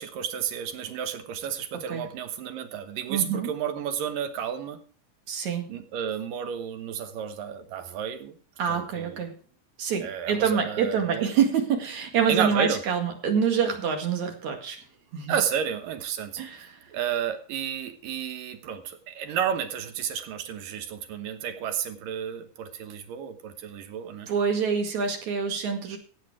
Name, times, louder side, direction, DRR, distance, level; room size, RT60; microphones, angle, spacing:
voice 1, 0.0-4.8 5.7-8.4 8.7-9.2 10.0-11.3 12.3-12.8 15.3-16.6 16.9-24.3, right 8 dB, 85° right, 8 dB, 2.9 m, -31 dB
voice 2, 3.1-3.5 5.3-5.7 8.6-9.3 9.8-14.8 15.1-15.3 16.4-16.8 24.3-26.0, right 6 dB, 60° right, 4 dB, 3.3 m, -26 dB
15.0 x 8.4 x 4.9 m, 0.43 s
omnidirectional pair, 3.8 m